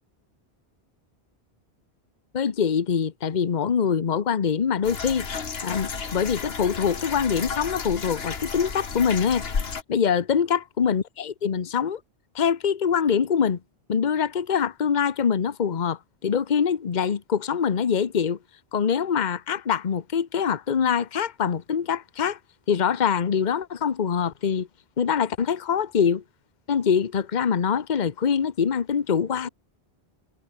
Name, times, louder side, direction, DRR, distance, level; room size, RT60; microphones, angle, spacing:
voice 1, 2.3-5.2 5.6-9.4 9.9-12.0 12.3-13.6 13.9-18.4 18.7-22.4 22.7-24.7 25.0-26.2 26.7-29.5, left 7 dB, 45° left, 1.0 m, -24 dB
sound 1, 4.8-9.8, left 5 dB, 70° left, 1.7 m, -32 dB
omnidirectional pair, 1.1 m